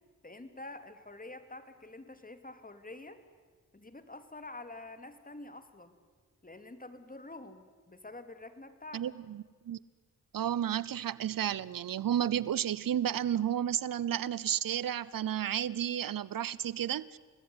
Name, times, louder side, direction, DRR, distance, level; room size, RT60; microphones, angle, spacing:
voice 1, 0.2-3.2 3.7-6.0 6.4-9.1, left 2 dB, 25° left, 9 dB, 2.9 m, -47 dB
voice 2, 8.9-9.8 10.3-17.2, right 10 dB, 75° right, 20 dB, 0.8 m, -32 dB
28.0 x 20.0 x 9.8 m, 1.5 s
cardioid pair, 55°, 34 cm